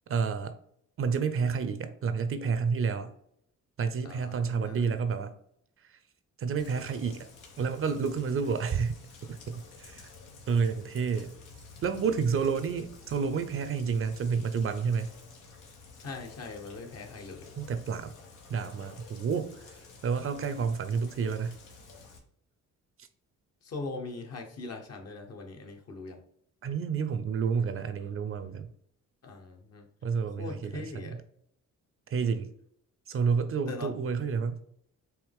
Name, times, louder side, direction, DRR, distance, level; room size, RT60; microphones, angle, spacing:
voice 1, 0.1-0.6 1.0-3.1 3.8-5.3 5.8-6.0 6.4-7.3 7.6-8.9 9.3-10.1 10.5-11.3 11.8-15.1 17.6-18.1 18.5-19.8 20.0-21.6 23.0-23.1 26.6-28.7 30.0-31.2 32.1-32.5 33.1-34.6, right 6 dB, 45° right, 0.6 m, -30 dB
voice 2, 4.0-4.9 16.0-17.5 23.6-26.2 29.2-29.9 30.4-31.2 33.7-33.9, left 3 dB, 55° left, 1.2 m, -41 dB
Rain, 6.6-22.2, left 4 dB, 85° left, 1.1 m, -51 dB
4.8 x 2.9 x 3.5 m
cardioid pair, 90°, 30 cm